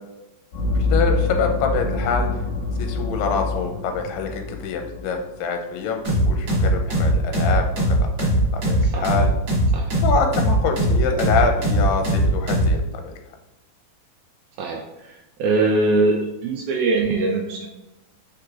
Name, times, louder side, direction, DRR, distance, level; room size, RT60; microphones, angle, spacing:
sound 1, 0.5-5.3, left 3 dB, 65° left, 2.8 m, -25 dB
voice 1, 0.9-2.3 2.8-6.0 6.3-9.3 10.0-13.1, left 5 dB, 85° left, 4 dB, 2.3 m, -25 dB
sound 2, 6.0-12.8, right 1 dB, 60° right, 1.1 m, -19 dB
voice 2, 8.8-9.2 9.7-10.0 14.6-17.7, right 3 dB, 85° right, 0 dB, 1.7 m, -22 dB
4.9 x 4.5 x 2.3 m, 0.98 s
omnidirectional pair, 3.9 m